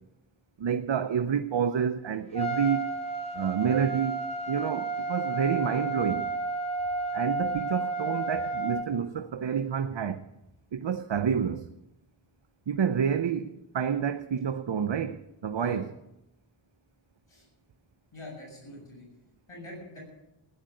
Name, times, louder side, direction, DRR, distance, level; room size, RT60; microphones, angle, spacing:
voice 1, 0.6-2.9 3.3-6.3 7.1-10.2 10.7-11.7 12.7-15.9, right 7 dB, 65° right, 0.8 m, -29 dB
Trumpet, 2.3-8.9, right 2 dB, 10° left, 2.2 m, -32 dB
voice 2, 18.1-19.0 19.5-20.0, left 1 dB, 85° left, 7.8 m, -44 dB
15.5 x 10.5 x 7.7 m
wide cardioid pair, 55°, 48 cm